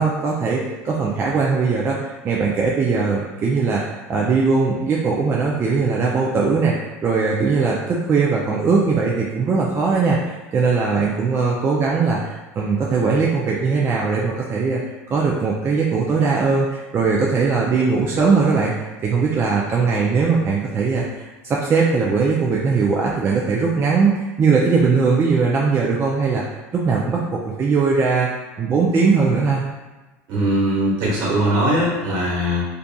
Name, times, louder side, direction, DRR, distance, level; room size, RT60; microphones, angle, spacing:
voice 1, 0.0-14.8 15.1-18.7 19.0-26.4 26.7-28.3 28.6-29.6, right 4 dB, 30° right, -3 dB, 0.4 m, -20 dB
voice 2, 30.3-32.7, equal, 60° right, -6 dB, 1.2 m, -20 dB
2.5 x 2.5 x 2.3 m, 1.2 s
hypercardioid pair, 85°, 8 cm